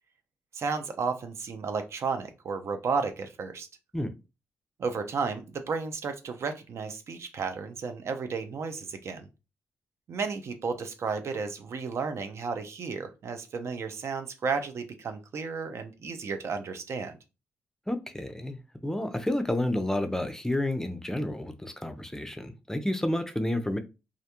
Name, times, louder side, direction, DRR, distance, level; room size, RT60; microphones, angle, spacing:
voice 1, 0.5-3.7 4.8-9.3 10.1-17.2, right 5 dB, 60° right, 7 dB, 0.5 m, -33 dB
voice 2, 17.9-23.8, left 1 dB, 10° left, 8 dB, 0.5 m, -30 dB
2.4 x 2.1 x 2.9 m, 0.27 s
supercardioid pair, 60°, 5 cm